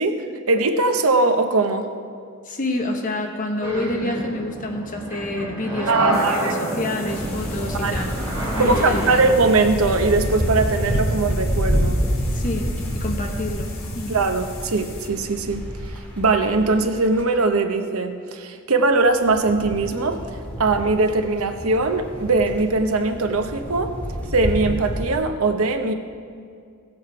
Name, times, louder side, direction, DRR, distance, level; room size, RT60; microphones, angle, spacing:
voice 1, 0.0-1.9 5.9-6.5 7.7-8.1 8.6-12.0 14.1-20.2 20.6-23.9 24.3-25.9, right 3 dB, 70° right, 6 dB, 0.9 m, -21 dB
voice 2, 2.4-8.2 8.6-9.4 12.3-14.2, left 2 dB, 40° left, 3 dB, 1.2 m, -28 dB
sound 1, 3.6-9.4, right 1 dB, 10° right, 2.7 m, -28 dB
sound 2, 6.1-15.1, left 6 dB, 65° left, 1.5 m, -42 dB
Thunder storm recorded in German truck stop, 7.1-17.2 18.9-25.1, equal, 5° left, 1.9 m, -28 dB
16.5 x 7.9 x 4.8 m, 2.3 s
head